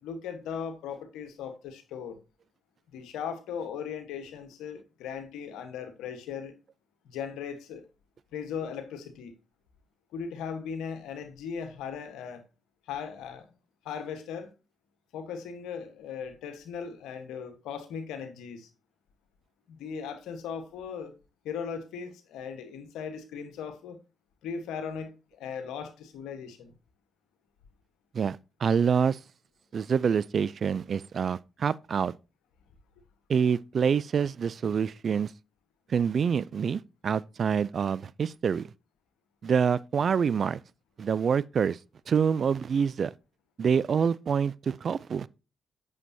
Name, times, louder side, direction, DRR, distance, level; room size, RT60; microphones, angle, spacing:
voice 1, 0.0-2.2 2.9-6.5 7.0-7.8 8.3-9.3 10.1-12.4 12.9-13.5 13.8-14.5 15.1-18.7 19.7-21.1 21.4-24.0 24.4-26.7, left 7 dB, 80° left, 1.3 m, -38 dB
voice 2, 28.1-29.2 29.7-32.1 33.3-35.3 35.9-38.7 39.4-40.6 41.0-41.8 42.1-43.1 43.6-45.3, right 6 dB, 60° right, 0.4 m, -26 dB
8.6 x 6.9 x 2.8 m
hypercardioid pair, 45°, 0 cm